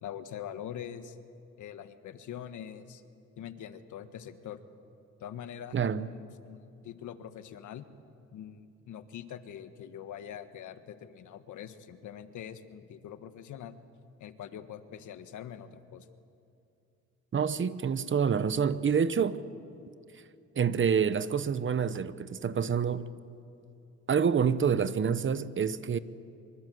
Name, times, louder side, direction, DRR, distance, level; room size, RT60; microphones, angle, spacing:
voice 1, 0.0-1.2 1.6-3.0 3.4-4.6 5.2-7.9 8.3-13.8 14.2-16.1, left 9 dB, 80° left, 1.6 m, -43 dB
voice 2, 5.7-6.1 17.3-19.4 20.6-23.0 24.1-26.0, right 7 dB, 40° right, 1.1 m, -27 dB
25.0 x 24.5 x 7.9 m
cardioid pair, 90°, 30 cm